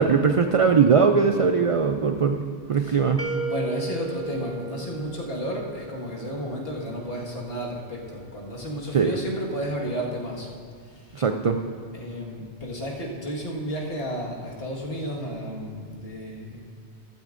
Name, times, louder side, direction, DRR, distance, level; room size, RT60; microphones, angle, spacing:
voice 1, 0.0-3.2 8.9-9.2 11.1-11.6, right 5 dB, 65° right, 6 dB, 0.3 m, -20 dB
sound 1, 3.2-6.0, right 2 dB, 15° right, 0.7 m, -34 dB
voice 2, 3.5-10.5 10.8-11.2 11.9-16.6, equal, 60° left, -3 dB, 1.9 m, -32 dB
14.5 x 13.0 x 2.6 m, 2.1 s
omnidirectional pair, 1.1 m